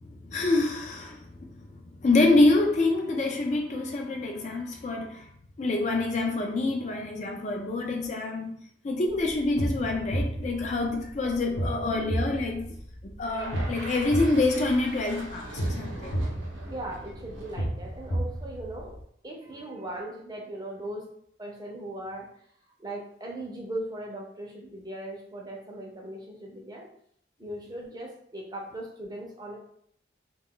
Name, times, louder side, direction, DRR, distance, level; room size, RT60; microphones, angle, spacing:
voice 1, 0.2-1.6 1.9-5.3 5.6-8.5 8.8-12.7 13.0-16.1, left 2 dB, 40° left, 1 dB, 0.4 m, -26 dB
sound 1, 9.1-19.0, right 1 dB, 70° left, 0.8 m, -33 dB
sound 2, 13.3-18.6, right 2 dB, 85° right, 0.7 m, -43 dB
voice 2, 16.6-19.0 19.2-21.0 21.4-22.3 22.8-26.9 27.4-29.6, right 1 dB, 20° right, -1 dB, 0.5 m, -38 dB
2.3 x 2.3 x 3.6 m, 0.66 s
head